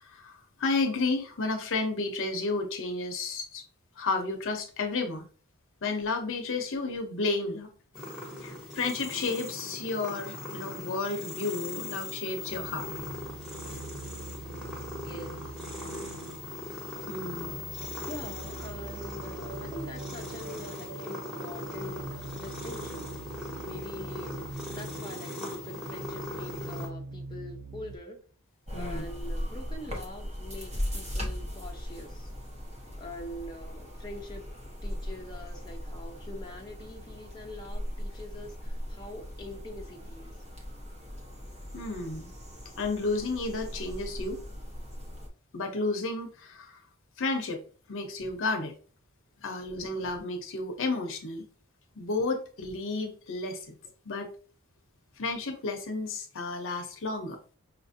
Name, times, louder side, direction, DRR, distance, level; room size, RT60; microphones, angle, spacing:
voice 1, 0.0-3.6 4.0-5.3 5.8-7.7 8.4-12.9 17.1-17.6 28.7-29.0 41.7-42.3 42.8-44.4 45.5-46.8 47.2-47.6 47.9-48.7 49.4-51.5 52.0-53.7 54.0-54.3 55.2-57.4, left 3 dB, 60° left, 0.8 m, -32 dB
sound 1, 7.9-26.9, left 1 dB, 5° right, 1.3 m, -40 dB
sound 2, 12.5-28.0, right 3 dB, 80° right, 0.6 m, -44 dB
voice 2, 15.0-15.9 18.1-23.1 23.4-28.2 28.7-32.3 33.0-34.4 34.8-40.3, left 1 dB, 20° left, 0.7 m, -44 dB
sound 3, 28.7-45.3, equal, 30° right, 1.0 m, -39 dB
5.7 x 2.5 x 2.6 m
head